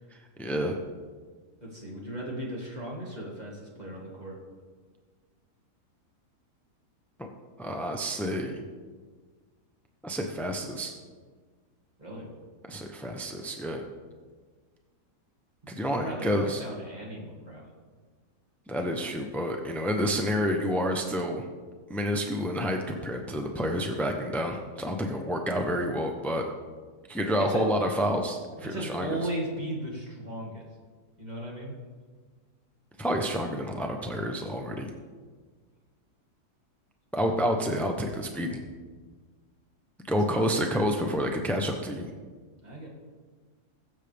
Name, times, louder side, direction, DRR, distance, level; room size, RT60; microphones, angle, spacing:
voice 1, 0.4-0.8 7.2-7.3 7.6-8.6 10.0-10.9 12.7-13.8 15.7-16.6 18.7-21.4 21.9-26.4 27.1-29.2 33.0-34.9 37.1-38.6 40.1-42.1, equal, ahead, 3 dB, 0.3 m, -29 dB
voice 2, 1.6-4.4 12.0-12.3 15.9-17.6 27.4-27.6 28.7-30.6 31.2-31.8 42.6-42.9, right 1 dB, 25° right, -3 dB, 2.5 m, -36 dB
22.0 x 7.4 x 3.5 m, 1.5 s
omnidirectional pair, 1.8 m